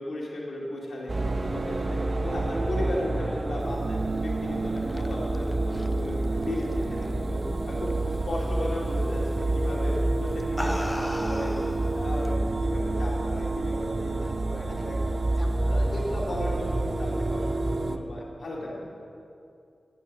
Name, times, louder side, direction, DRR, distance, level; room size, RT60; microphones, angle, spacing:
voice 1, 0.0-12.4 12.6-14.9 15.2-15.4 15.7-18.8, left 1 dB, 70° left, -4 dB, 2.3 m, -35 dB
sound 1, 1.1-18.0, right 2 dB, 50° right, 0.7 m, -28 dB
sound 2, 4.5-7.4 7.7-8.1 9.4-9.6 10.2-12.4, left 1 dB, 15° left, 0.4 m, -37 dB
voice 2, 14.2-14.9 15.4-16.1 18.2-18.3 18.6-18.8, left 2 dB, 40° left, 1 dB, 1.8 m, -47 dB
9.5 x 8.8 x 6.5 m, 2.5 s
cardioid pair, 45°, 0 cm